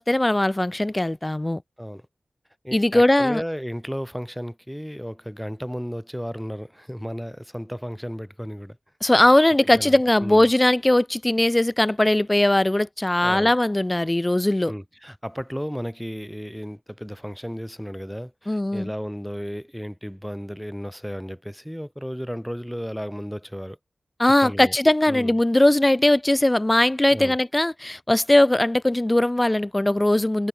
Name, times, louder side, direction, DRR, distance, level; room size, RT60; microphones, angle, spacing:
voice 1, 0.0-1.6 2.7-3.4 9.0-14.7 18.5-18.9 24.2-30.5, left 1 dB, 20° left, 1.0 m, -19 dB
voice 2, 2.6-8.8 9.0-9.1 9.6-10.5 13.2-13.5 14.7-23.8 24.4-24.7 25.1-25.3 27.1-27.4, equal, ahead, 6.4 m, -34 dB
cardioid pair, 45°, 0 cm